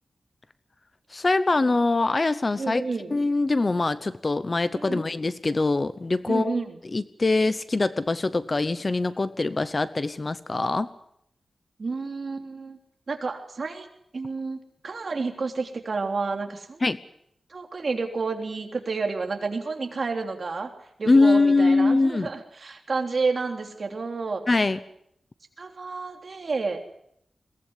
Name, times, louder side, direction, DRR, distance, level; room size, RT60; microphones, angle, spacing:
voice 1, 1.1-2.8 3.1-6.6 6.9-10.9 16.8-17.0 21.1-22.3 24.5-24.8, left 3 dB, 30° left, 14 dB, 0.8 m, -23 dB
voice 2, 2.6-3.2 4.7-5.0 6.3-6.7 11.8-12.8 13.1-13.9 14.1-16.8 17.5-20.7 21.0-24.4 25.6-26.8, right 4 dB, 45° right, 4 dB, 3.3 m, -30 dB
22.0 x 18.0 x 9.7 m, 0.74 s
wide cardioid pair, 165°, 0 cm